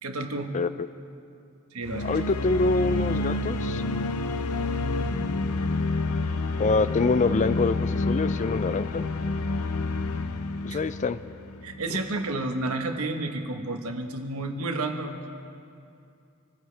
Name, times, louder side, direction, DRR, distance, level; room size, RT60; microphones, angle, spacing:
voice 1, 0.0-0.5 1.7-2.2 10.7-10.8 11.6-15.2, right 2 dB, 70° right, 4 dB, 1.3 m, -31 dB
sound 1, 1.8-11.9, left 2 dB, 75° left, 0.7 m, -28 dB
voice 2, 2.0-3.8 6.6-9.1 10.6-11.2, left 3 dB, 35° left, 14 dB, 0.4 m, -25 dB
27.0 x 15.0 x 3.4 m, 2.6 s
head